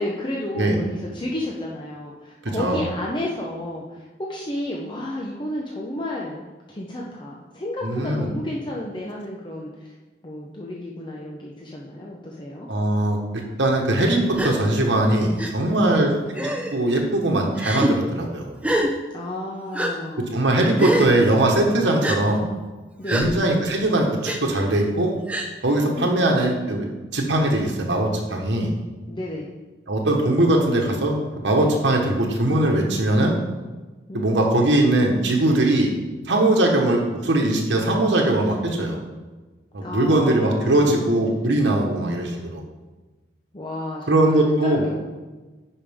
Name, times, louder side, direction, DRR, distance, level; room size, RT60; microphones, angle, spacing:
voice 1, 0.0-9.9 10.2-12.7 15.8-16.0 19.1-20.4 23.0-23.3 25.8-26.2 29.1-29.5 34.1-34.4 39.8-41.1 43.5-45.0, left 1 dB, 25° left, -3 dB, 0.8 m, -32 dB
voice 2, 2.4-2.8 7.8-8.3 12.7-13.2 13.6-16.1 16.7-18.5 20.3-22.4 23.1-25.1 25.6-28.7 29.9-31.2 31.4-33.4 34.1-35.9 36.3-39.0 39.7-42.6 44.1-44.8, right 1 dB, 80° right, 0 dB, 1.3 m, -20 dB
Gasp, 14.3-14.5 15.4-15.5 16.4-16.8 17.6-17.9 18.6-18.9 19.7-19.9 20.8-21.1 22.0-22.2 23.1-23.3 24.3-24.4 25.3-25.5, equal, 10° right, 0.6 m, -24 dB
10.0 x 5.1 x 3.6 m, 1.2 s
head